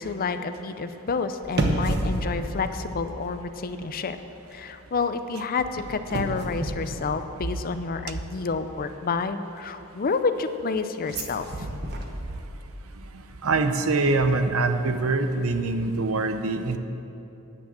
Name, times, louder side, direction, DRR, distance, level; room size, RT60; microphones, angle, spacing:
voice 1, 0.0-4.2 4.5-11.7, left 4 dB, 40° left, 10 dB, 0.5 m, -29 dB
sound 1, 1.4-3.7 4.0-4.3 5.6-7.8 11.1-13.0 13.2-13.3, right 1 dB, 50° right, 1.1 m, -31 dB
voice 2, 13.4-16.8, right 3 dB, 70° right, 8 dB, 0.7 m, -24 dB
9.9 x 8.7 x 7.3 m, 2.9 s
head